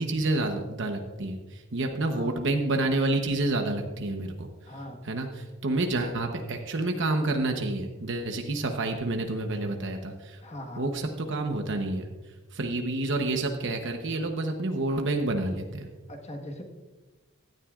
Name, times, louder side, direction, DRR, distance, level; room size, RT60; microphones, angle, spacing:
voice 1, 0.0-4.5 5.0-10.4 10.8-12.1 12.5-15.9, right 2 dB, 60° right, 4 dB, 1.0 m, -29 dB
voice 2, 2.1-2.4 4.6-5.0 10.4-10.9 16.1-16.6, left 1 dB, 30° left, 3 dB, 1.4 m, -40 dB
17.0 x 12.0 x 2.5 m, 1.3 s
head